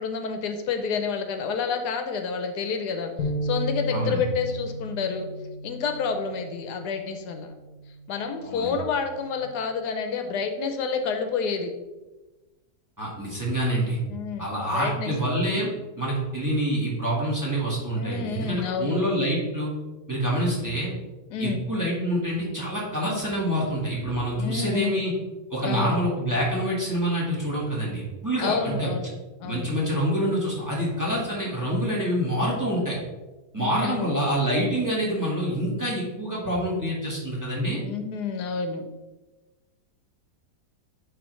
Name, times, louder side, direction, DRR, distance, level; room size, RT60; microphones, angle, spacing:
voice 1, 0.0-5.3 5.6-7.5 8.1-11.7 14.1-14.5 14.7-15.1 17.9-19.0 21.3-21.6 24.4-25.0 25.6-26.0 28.4-29.1 29.4-29.7 33.6-34.1 37.8-38.8, left 5 dB, 85° left, 6 dB, 1.2 m, -29 dB
sound 1, 3.2-9.4, left 1 dB, 65° left, 1.1 m, -34 dB
voice 2, 3.9-4.2 8.4-8.7 13.0-14.0 14.4-15.7 16.0-19.7 20.1-20.9 21.4-25.1 25.5-28.9 29.4-33.0 33.5-37.8, equal, 10° right, -5 dB, 1.4 m, -26 dB
9.5 x 3.2 x 3.1 m, 1.1 s
omnidirectional pair, 1.7 m